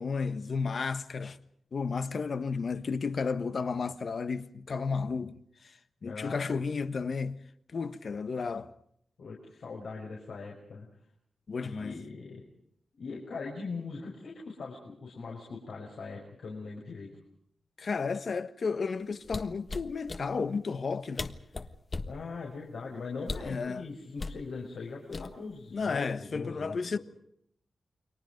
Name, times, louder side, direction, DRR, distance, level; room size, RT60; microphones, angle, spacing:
voice 1, 0.0-1.4 1.7-5.7 6.0-7.4 7.7-8.7 11.5-12.0 17.8-21.4 23.4-23.8 25.7-27.0, left 5 dB, 60° left, 1.3 m, -33 dB
voice 2, 6.0-6.4 9.2-10.9 11.6-12.4 13.0-17.1 22.1-27.0, left 4 dB, 85° left, 5.9 m, -41 dB
sound 1, 19.2-20.2 20.9-21.0 21.2-22.2 23.2-23.6 24.2-24.4 25.1-25.6 25.9-26.2, left 3 dB, 40° left, 1.4 m, -37 dB
30.0 x 23.5 x 5.2 m
wide cardioid pair, 95°, 0 cm